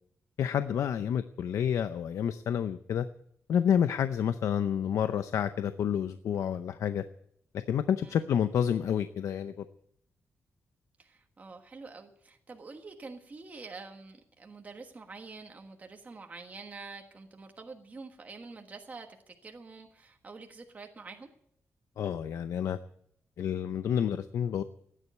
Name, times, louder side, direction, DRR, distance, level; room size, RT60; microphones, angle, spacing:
voice 1, 0.4-3.1 3.5-7.0 7.5-9.6 22.0-22.8 23.4-24.6, left 8 dB, 85° left, 11 dB, 0.6 m, -29 dB
voice 2, 11.0-21.3, right 4 dB, 30° right, 3 dB, 1.4 m, -47 dB
15.0 x 10.0 x 8.4 m, 0.69 s
wide cardioid pair, 145°, 5 cm